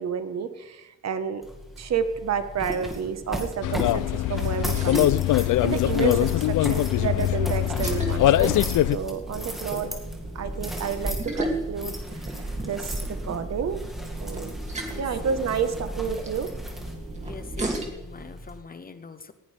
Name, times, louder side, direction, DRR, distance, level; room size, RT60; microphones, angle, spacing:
voice 1, 0.0-1.4 1.8-8.5 8.9-9.9 10.3-11.9 12.2-13.8 14.2-14.5 15.0-16.5, right 7 dB, 55° right, 9 dB, 1.3 m, -30 dB
sound 1, 1.4-18.6, equal, ahead, 2.1 m, -38 dB
sound 2, 2.6-17.9, right 1 dB, 20° right, 2.5 m, -35 dB
sound 3, 3.6-9.0, left 13 dB, 75° left, 0.5 m, -22 dB
voice 2, 14.9-15.4 17.2-19.3, left 4 dB, 30° left, 11 dB, 0.8 m, -43 dB
19.5 x 16.5 x 3.4 m, 0.99 s
wide cardioid pair, 160°, 31 cm